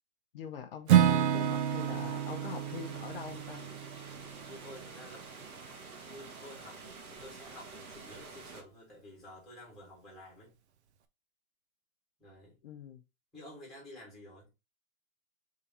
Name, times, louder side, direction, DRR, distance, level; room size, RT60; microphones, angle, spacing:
voice 1, 0.3-3.6 12.6-13.0, left 7 dB, 40° left, 0.7 m, -44 dB
Acoustic guitar / Strum, 0.9-4.9, right 10 dB, 50° right, 0.6 m, -29 dB
sound 1, 0.9-8.6, right 4 dB, 80° right, 1.6 m, -48 dB
voice 2, 4.5-5.5 6.0-10.6 12.2-12.6 13.3-14.5, left 1 dB, ahead, 2.0 m, -51 dB
4.8 x 3.7 x 2.9 m
hypercardioid pair, 170°, 43 cm